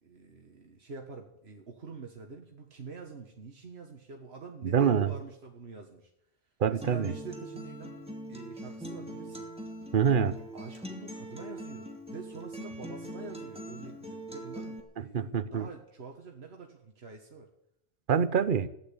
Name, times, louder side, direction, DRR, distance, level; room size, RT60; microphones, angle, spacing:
voice 1, 0.0-6.1 6.7-7.9 8.3-9.5 10.5-17.5, right 4 dB, 85° right, 1.7 m, -46 dB
voice 2, 4.6-5.1 6.6-7.1 9.9-10.3 15.1-15.7 18.1-18.7, right 7 dB, 60° right, 1.0 m, -25 dB
Acoustic guitar, 6.8-14.8, right 1 dB, 5° right, 2.3 m, -42 dB
16.0 x 10.5 x 8.4 m
omnidirectional pair, 1.0 m